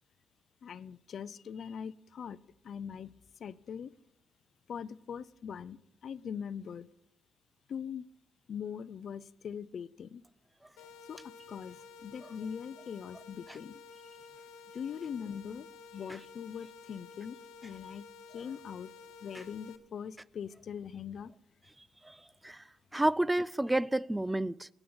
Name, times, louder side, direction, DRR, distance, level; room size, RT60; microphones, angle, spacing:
voice 1, 0.6-2.4 2.6-3.9 4.7-6.9 7.7-8.0 8.5-10.2 11.1-13.8 14.7-15.7 15.9-18.1 18.3-18.9 19.2-21.3, left 7 dB, 55° left, 0.6 m, -42 dB
sound 1, 10.8-19.8, left 5 dB, 90° left, 0.8 m, -52 dB
voice 2, 22.9-24.7, right 1 dB, 10° right, 0.4 m, -30 dB
20.5 x 9.0 x 4.0 m
cardioid pair, 90°, 0 cm